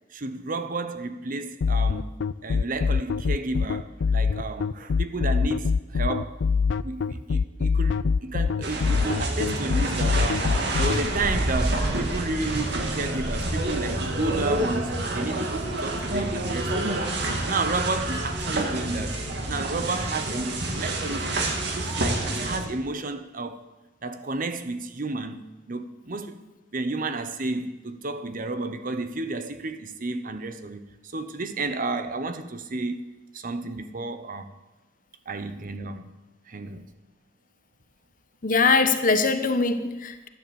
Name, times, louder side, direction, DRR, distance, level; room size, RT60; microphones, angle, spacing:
voice 1, 0.1-6.4 6.8-17.0 17.5-21.3 21.7-23.6 24.0-26.4 26.7-34.5 35.3-36.1 36.5-36.8, right 3 dB, 45° right, 0.9 m, -32 dB
sound 1, 1.6-11.0, left 5 dB, 70° left, 0.4 m, -23 dB
sound 2, 8.6-22.6, right 1 dB, 65° right, 2.2 m, -28 dB
voice 2, 38.4-40.3, left 4 dB, 45° left, 1.1 m, -22 dB
12.5 x 10.5 x 7.1 m
head